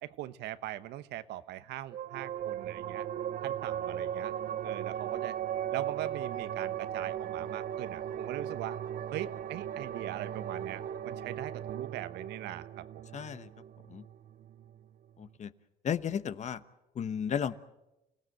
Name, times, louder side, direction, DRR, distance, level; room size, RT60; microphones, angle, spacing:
voice 1, 0.0-3.0 3.4-4.3 4.6-5.4 5.7-8.8 9.1-13.0, right 13 dB, 80° right, 13 dB, 1.0 m, -41 dB
sound 1, 1.9-14.8, right 10 dB, 55° right, 0.7 m, -37 dB
voice 2, 13.1-13.5 13.9-14.0 15.2-15.5 15.8-16.6 16.9-17.5, left 8 dB, 45° left, 13 dB, 1.0 m, -33 dB
29.5 x 17.0 x 7.9 m, 0.95 s
cardioid pair, 110°, 17 cm